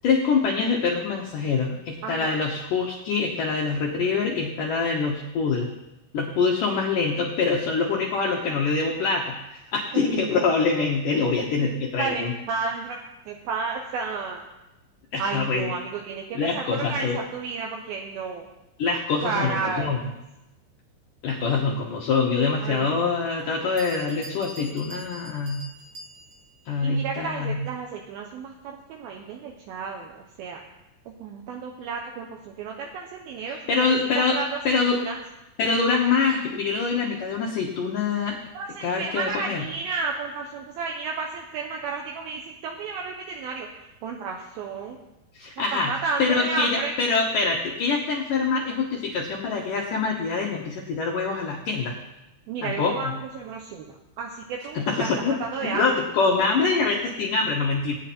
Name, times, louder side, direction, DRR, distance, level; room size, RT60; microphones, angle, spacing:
voice 1, 0.0-5.7 6.1-12.3 15.1-15.7 16.3-17.2 18.8-20.0 21.2-25.7 26.7-27.6 33.5-34.4 34.7-35.0 35.6-38.4 38.8-39.6 45.3-45.9 46.2-51.9 52.6-53.1 54.7-55.4 55.7-57.9, left 4 dB, 90° left, -1 dB, 1.8 m, -25 dB
voice 2, 2.0-2.4 9.9-10.5 12.0-13.0 13.3-14.5 15.2-18.5 19.2-20.0 22.6-23.3 26.8-30.6 31.1-33.8 34.2-35.2 38.5-43.7 44.0-45.0 45.6-46.9 52.5-55.9, right 4 dB, 75° right, 1 dB, 2.2 m, -32 dB
Bell, 23.4-23.5 23.8-26.6, equal, 55° right, 1.9 m, -43 dB
18.0 x 9.1 x 4.3 m, 0.95 s
omnidirectional pair, 5.4 m